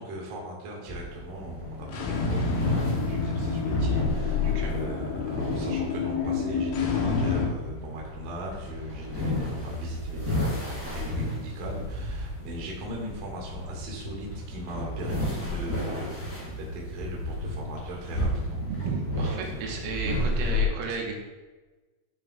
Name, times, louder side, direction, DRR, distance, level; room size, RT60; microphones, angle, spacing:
voice 1, 0.0-18.6, right 1 dB, 55° right, -2 dB, 2.9 m, -39 dB
sound 1, 0.9-20.6, left 1 dB, 25° left, 2.2 m, -32 dB
sound 2, 1.8-7.5, left 5 dB, 75° left, 3.2 m, -29 dB
voice 2, 4.4-4.8 18.6-21.2, right 4 dB, 90° right, 0 dB, 3.8 m, -33 dB
12.0 x 7.3 x 2.4 m, 1.2 s
omnidirectional pair, 5.8 m